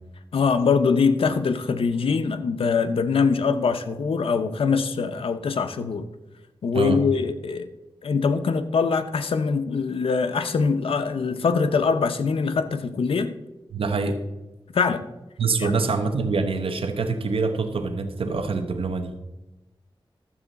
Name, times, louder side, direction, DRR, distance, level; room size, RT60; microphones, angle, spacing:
voice 1, 0.3-6.1 6.6-7.7 8.0-13.3 14.7-15.0 15.6-15.8, left 5 dB, 85° left, 9 dB, 0.6 m, -23 dB
voice 2, 13.7-14.2 15.4-19.1, right 4 dB, 85° right, 7 dB, 1.0 m, -25 dB
12.5 x 7.4 x 4.0 m, 1.0 s
wide cardioid pair, 80°, 9 cm